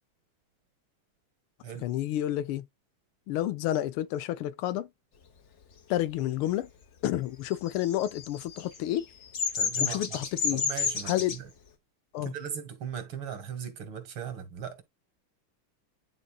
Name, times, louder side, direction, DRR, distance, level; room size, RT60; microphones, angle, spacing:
voice 1, 1.8-2.7 3.3-4.9 5.9-6.7 7.0-9.1 9.8-10.6 11.1-11.4 12.1-12.3, left 13 dB, 85° left, 1.5 m, -30 dB
Bird vocalization bird call bird song, 7.7-11.4, left 6 dB, 45° left, 0.9 m, -30 dB
voice 2, 9.5-10.2 10.5-11.5 12.2-14.8, right 8 dB, 75° right, 2.4 m, -38 dB
10.0 x 4.0 x 2.3 m
omnidirectional pair, 2.3 m